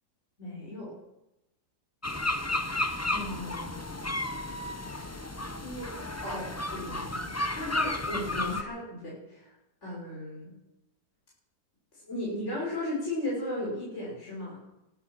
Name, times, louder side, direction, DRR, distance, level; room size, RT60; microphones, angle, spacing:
voice 1, 0.4-1.0 3.1-3.9 4.8-5.3 5.6-5.9 6.2-7.3 7.6-9.5 9.8-10.5 12.0-14.6, left 1 dB, 45° left, -6 dB, 6.2 m, -36 dB
sound 1, 2.0-8.6, left 2 dB, 15° left, 0.6 m, -33 dB
20.0 x 11.0 x 6.3 m, 0.89 s
omnidirectional pair, 1.7 m